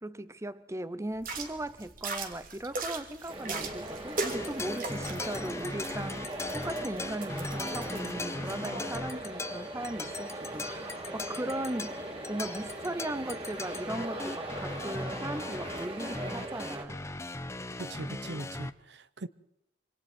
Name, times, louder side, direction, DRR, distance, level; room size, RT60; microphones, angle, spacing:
voice 1, 0.0-12.0 12.3-17.0, right 1 dB, 15° right, 0.8 m, -38 dB
sound 1, 1.2-8.1, right 3 dB, 50° right, 3.0 m, -39 dB
sound 2, 3.3-16.9, right 1 dB, 35° right, 4.1 m, -40 dB
sound 3, 4.3-18.7, left 2 dB, 15° left, 0.8 m, -39 dB
voice 2, 17.8-19.3, right 2 dB, 70° right, 0.8 m, -40 dB
26.5 x 25.0 x 4.4 m
head